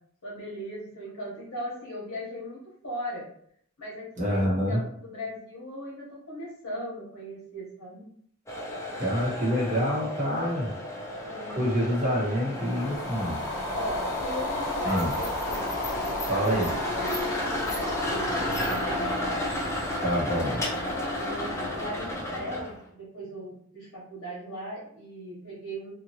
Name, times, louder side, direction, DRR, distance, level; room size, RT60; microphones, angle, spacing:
voice 1, 0.2-2.6 2.8-3.3 3.8-8.0 11.3-11.7 13.7-16.7 17.0-20.1 21.1-25.9, equal, 60° left, -7 dB, 1.0 m, -38 dB
voice 2, 4.2-4.8 9.0-10.7 11.5-13.4 14.8-15.1 16.3-16.7 20.0-20.6, equal, 35° right, -6 dB, 1.3 m, -26 dB
sound 1, 8.5-22.8, left 1 dB, 10° left, 0.5 m, -33 dB
sound 2, 12.5-22.0, left 1 dB, 80° left, 0.5 m, -35 dB
2.8 x 2.4 x 2.9 m, 0.66 s
head